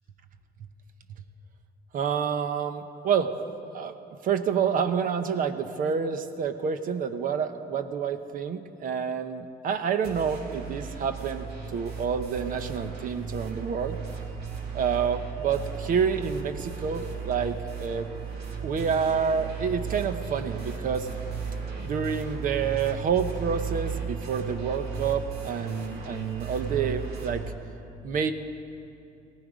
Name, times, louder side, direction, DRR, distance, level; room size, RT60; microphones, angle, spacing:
voice 1, 1.9-3.3 3.7-4.0 4.2-14.0 14.7-18.1 18.6-21.1 21.8-27.4 28.0-28.3, right 6 dB, 55° right, 9 dB, 0.8 m, -28 dB
sound 1, 10.0-27.5, right 5 dB, 75° right, 2.0 m, -35 dB
17.0 x 15.0 x 5.1 m, 2.7 s
cardioid pair, 110°, 17 cm